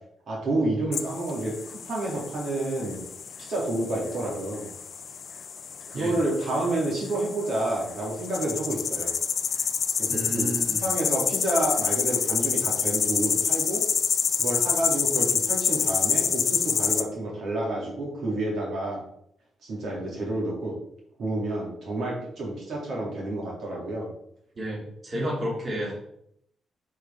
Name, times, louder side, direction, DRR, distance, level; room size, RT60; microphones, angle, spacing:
voice 1, 0.3-3.0 3.4-4.7 5.9-9.1 10.0-10.5 10.8-13.8 14.4-19.0 19.6-20.7 21.2-24.1, right 1 dB, 55° right, -3 dB, 2.7 m, -29 dB
sound 1, 0.9-17.0, left 6 dB, 40° left, 0.5 m, -28 dB
voice 2, 10.1-10.9 24.5-25.9, equal, 25° right, -5 dB, 2.6 m, -31 dB
10.0 x 4.9 x 3.7 m, 0.71 s
wide cardioid pair, 175°, 0 cm